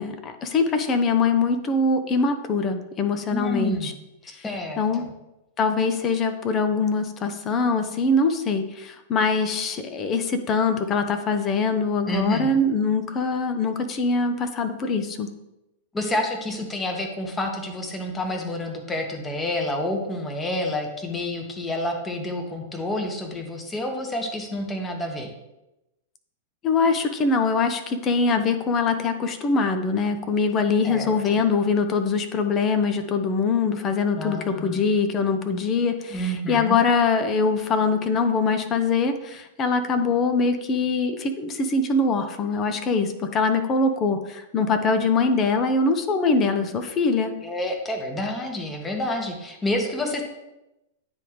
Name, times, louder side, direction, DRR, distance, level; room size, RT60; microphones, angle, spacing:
voice 1, 0.0-3.9 4.3-4.4 4.8-5.0 5.6-15.3 26.6-47.3, left 4 dB, 30° left, 8 dB, 0.7 m, -23 dB
voice 2, 3.3-3.9 4.4-5.1 12.0-12.5 15.9-25.3 30.8-31.4 34.2-34.8 36.1-36.8 47.4-50.2, left 1 dB, 15° left, 3 dB, 1.2 m, -29 dB
9.6 x 3.5 x 3.1 m, 0.94 s
hypercardioid pair, 110°, 0 cm